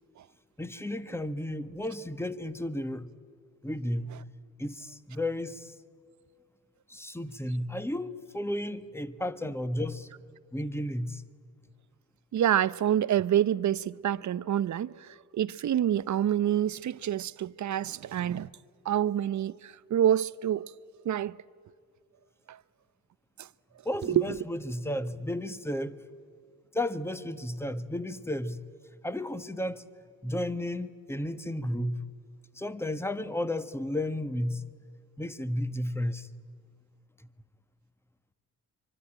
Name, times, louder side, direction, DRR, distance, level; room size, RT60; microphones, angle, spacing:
voice 1, 0.6-3.1 3.6-4.2 4.6-5.7 6.9-10.1 10.5-11.2 23.8-26.0 26.7-28.6 29.0-29.9 30.2-32.0 32.5-34.6 35.2-36.3, left 1 dB, 5° left, 1.3 m, -33 dB
voice 2, 12.3-18.5 18.8-20.7 21.0-21.4 22.5-22.6 23.4-23.5 24.1-24.4, right 10 dB, 45° right, 0.7 m, -27 dB
24.5 x 24.0 x 8.9 m
hypercardioid pair, 45°, 41 cm